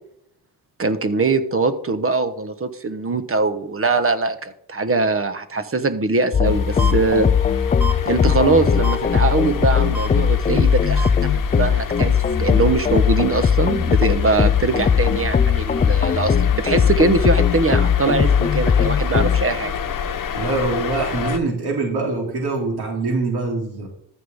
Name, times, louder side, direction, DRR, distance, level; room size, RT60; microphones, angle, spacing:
voice 1, 0.8-7.3 8.0-19.7, right 3 dB, 35° right, 10 dB, 1.2 m, -22 dB
sound 1, 6.3-19.5, left 7 dB, 20° left, 0.3 m, -19 dB
sound 2, 6.4-21.4, left 7 dB, 50° left, 1.1 m, -29 dB
sound 3, 6.8-6.9 7.8-7.9 8.8-9.0 9.9-10.1 11.0-11.1 12.0-12.1, right 4 dB, 5° right, 1.4 m, -27 dB
voice 2, 20.3-23.9, right 3 dB, 65° right, -1 dB, 3.4 m, -24 dB
14.0 x 5.5 x 3.6 m, 0.70 s
cardioid pair, 70°, 41 cm